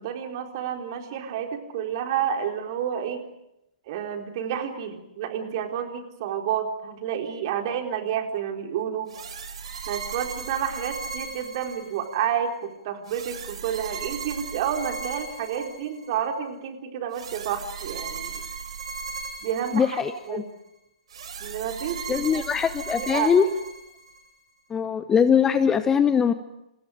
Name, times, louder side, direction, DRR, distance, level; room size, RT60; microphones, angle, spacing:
voice 1, 0.0-3.2 3.9-9.1 9.9-18.4 19.4-20.0 20.3-20.4 21.4-22.4 22.9-23.3, right 9 dB, 35° right, 4 dB, 4.1 m, -30 dB
sound 1, 9.1-12.2 13.1-16.2 17.1-20.3 21.1-24.2, right 5 dB, 50° right, 5.5 m, -37 dB
voice 2, 19.7-20.4 22.1-23.5 24.7-26.3, left 7 dB, 10° left, 12 dB, 0.9 m, -21 dB
30.0 x 29.0 x 5.1 m, 0.87 s
figure-of-eight pair, 125°, 4 cm